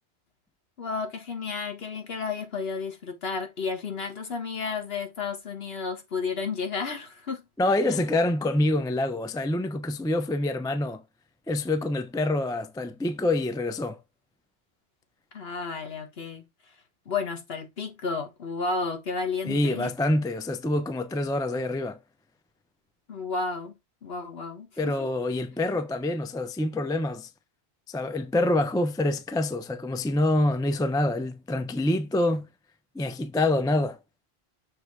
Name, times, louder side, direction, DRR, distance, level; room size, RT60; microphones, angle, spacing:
voice 1, 0.8-7.4 7.9-8.0 15.3-16.4 17.0-19.9 23.1-24.9, left 4 dB, 65° left, 1.5 m, -32 dB
voice 2, 7.6-11.0 11.5-14.0 19.4-22.0 24.8-27.3 27.9-32.5 32.9-34.0, left 2 dB, 5° left, 0.3 m, -26 dB
6.4 x 3.1 x 4.6 m
omnidirectional pair, 1.1 m